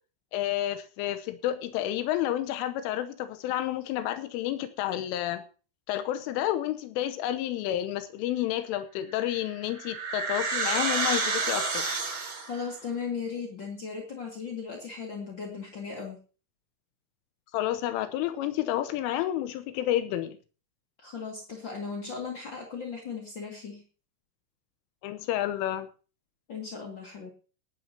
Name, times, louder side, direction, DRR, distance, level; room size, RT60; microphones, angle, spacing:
voice 1, 0.3-5.4 5.9-11.9 17.5-20.4 25.0-25.9, left 13 dB, 90° left, 9 dB, 3.4 m, -30 dB
sound 1, 9.2-12.6, right 4 dB, 50° right, 5.9 m, -29 dB
voice 2, 12.5-16.2 21.0-23.8 26.5-27.3, left 5 dB, 45° left, 1 dB, 1.5 m, -37 dB
18.5 x 12.0 x 2.8 m, 0.35 s
omnidirectional pair, 5.6 m